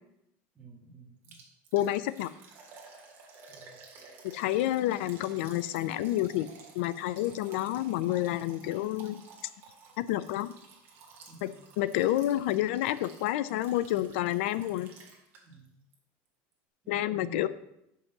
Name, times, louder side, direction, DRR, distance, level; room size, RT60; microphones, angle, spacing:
voice 1, 0.5-1.4 3.5-3.8 11.3-11.7 15.4-15.8 16.8-17.5, right 3 dB, 15° right, -1 dB, 1.6 m, -50 dB
Liquid, 1.2-15.7 15.9-16.0 16.5-16.6, right 4 dB, 35° right, 1.7 m, -53 dB
voice 2, 1.7-2.3 4.3-6.5 6.8-9.2 10.0-10.5 11.4-11.5 11.8-14.9 16.9-17.5, left 14 dB, 85° left, 15 dB, 0.5 m, -29 dB
6.6 x 5.6 x 7.0 m, 0.81 s
cardioid pair, 170°, 6 cm